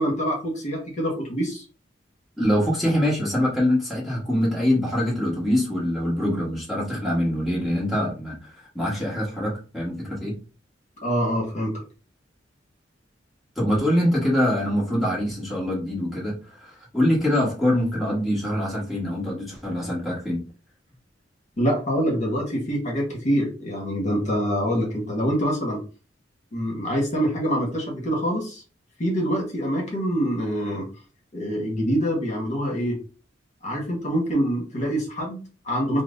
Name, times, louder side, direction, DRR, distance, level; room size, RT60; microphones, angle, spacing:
voice 1, 0.0-1.6 11.0-11.7 21.6-25.8 26.5-28.6 29.0-30.9 31.3-33.0 33.6-36.0, equal, 40° left, -1 dB, 1.3 m, -25 dB
voice 2, 2.4-10.3 13.6-20.4, left 1 dB, ahead, -5 dB, 1.3 m, -24 dB
5.6 x 2.0 x 2.6 m, 0.34 s
head